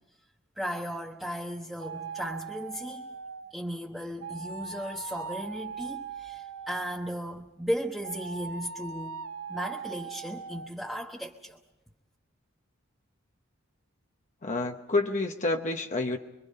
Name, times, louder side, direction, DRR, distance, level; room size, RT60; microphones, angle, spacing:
voice 1, 0.6-3.1 3.5-9.2 9.5-11.6, equal, ahead, -2 dB, 1.1 m, -36 dB
sound 1, 1.8-3.5 4.2-7.1 8.0-10.7, right 6 dB, 70° right, 0.8 m, -40 dB
voice 2, 14.4-16.2, left 2 dB, 35° left, 3 dB, 1.0 m, -28 dB
26.5 x 23.5 x 5.5 m, 0.97 s
head